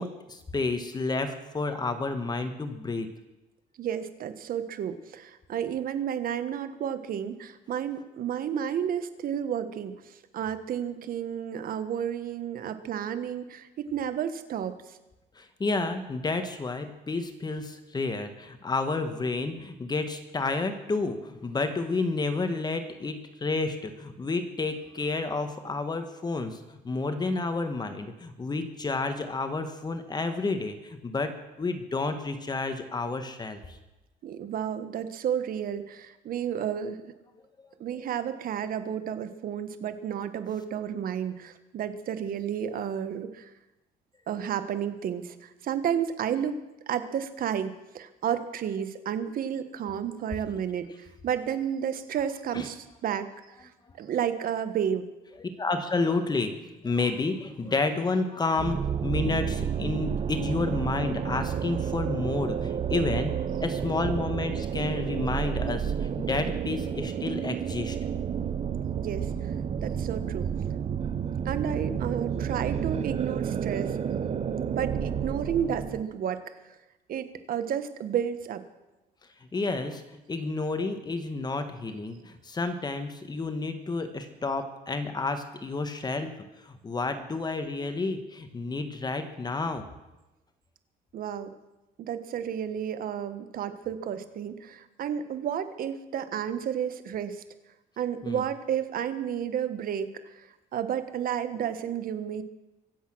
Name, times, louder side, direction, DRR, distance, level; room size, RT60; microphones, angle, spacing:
voice 1, 0.0-3.1 15.3-31.3 31.6-33.8 38.0-38.1 52.5-52.7 55.4-63.4 63.6-68.0 79.5-80.0 80.3-86.3 86.6-89.8 98.2-98.4, left 3 dB, 25° left, 8 dB, 1.5 m, -30 dB
voice 2, 3.8-15.0 34.2-37.1 37.8-43.5 44.3-53.3 53.6-53.7 54.0-55.1 68.9-69.5 69.8-70.5 71.4-74.0 74.7-76.4 77.1-78.6 91.1-91.5 92.0-97.4 98.0-102.4, right 9 dB, 60° right, 11 dB, 1.4 m, -32 dB
sound 1, 58.6-76.0, right 8 dB, 40° right, 0.8 m, -30 dB
23.5 x 8.2 x 6.3 m, 1.0 s
cardioid pair, 110°, 17 cm